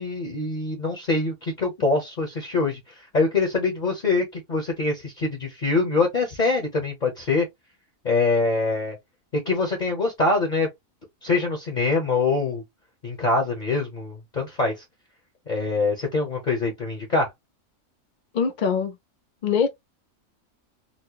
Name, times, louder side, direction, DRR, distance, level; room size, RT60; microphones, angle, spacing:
voice 1, 0.0-2.8 3.1-7.5 8.0-9.0 9.5-10.7 11.2-12.6 13.0-14.8 15.5-17.3, left 3 dB, 40° left, 0.9 m, -24 dB
voice 2, 18.3-19.0 19.4-19.7, left 6 dB, 65° left, 0.4 m, -22 dB
4.2 x 2.0 x 2.9 m
omnidirectional pair, 1.4 m